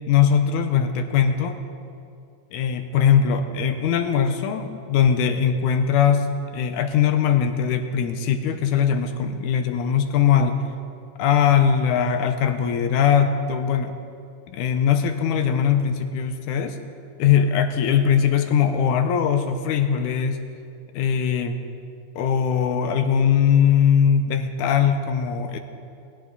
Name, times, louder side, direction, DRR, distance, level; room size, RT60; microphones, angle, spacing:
voice 1, 0.1-1.6 2.5-10.6 11.2-13.9 14.5-16.8 17.2-20.4 20.9-21.6 22.2-25.6, left 8 dB, 80° left, 8 dB, 2.3 m, -20 dB
18.5 x 16.0 x 4.1 m, 2.4 s
omnidirectional pair, 3.6 m